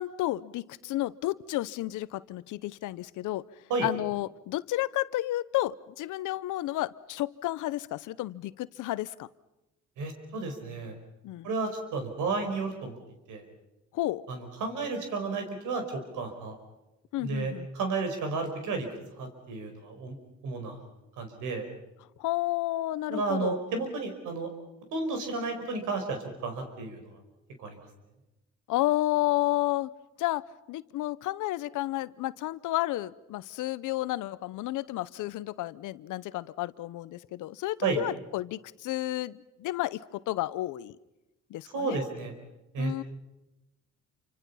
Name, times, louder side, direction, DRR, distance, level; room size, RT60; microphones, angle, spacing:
voice 1, 0.0-3.4 3.8-9.3 11.2-11.5 13.9-14.2 17.1-17.7 22.2-23.6 28.7-29.9 30.2-30.4 30.7-41.0 41.5-42.0 42.8-43.0, left 16 dB, 90° left, 17 dB, 0.8 m, -31 dB
voice 2, 10.0-10.9 11.4-13.0 13.3-13.4 14.3-16.6 17.2-18.9 19.2-20.2 20.4-20.8 21.2-21.7 23.1-24.5 24.9-27.1 27.6-27.9 37.8-38.0 41.7-42.3 42.7-43.0, right 3 dB, 85° right, 5 dB, 5.0 m, -32 dB
28.5 x 25.5 x 5.7 m, 0.97 s
cardioid pair, 90°, 30 cm